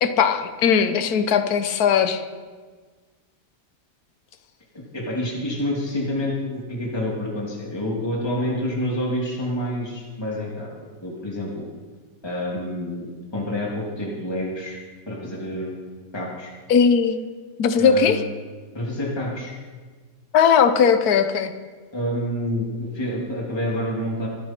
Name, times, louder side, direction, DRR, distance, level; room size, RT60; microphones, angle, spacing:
voice 1, 0.0-2.2 16.7-17.2 17.6-18.2 20.3-21.5, left 6 dB, 65° left, 8 dB, 1.4 m, -18 dB
voice 2, 4.9-11.6 12.2-13.1 13.3-14.8 15.1-16.5 17.8-18.2 18.7-19.5 21.9-24.3, left 1 dB, 15° left, -4 dB, 2.7 m, -28 dB
24.5 x 12.5 x 4.5 m, 1.5 s
omnidirectional pair, 1.8 m